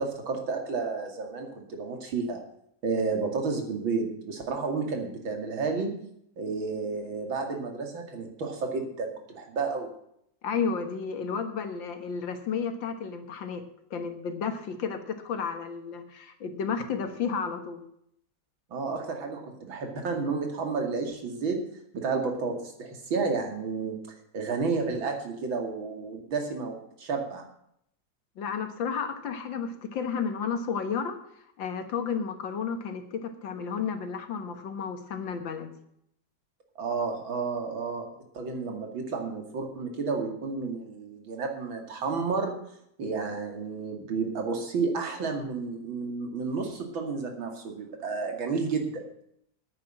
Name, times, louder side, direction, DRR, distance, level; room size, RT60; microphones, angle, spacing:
voice 1, 0.0-2.4 2.8-6.0 6.4-9.9 18.7-21.6 21.9-24.0 24.3-27.5 36.8-38.1 38.3-42.6 43.0-49.1, right 4 dB, 85° right, 3 dB, 3.1 m, -31 dB
voice 2, 10.4-13.7 13.9-17.8 28.4-31.2 31.6-35.7, left 6 dB, 75° left, 8 dB, 2.1 m, -32 dB
9.6 x 9.5 x 7.8 m, 0.73 s
omnidirectional pair, 2.1 m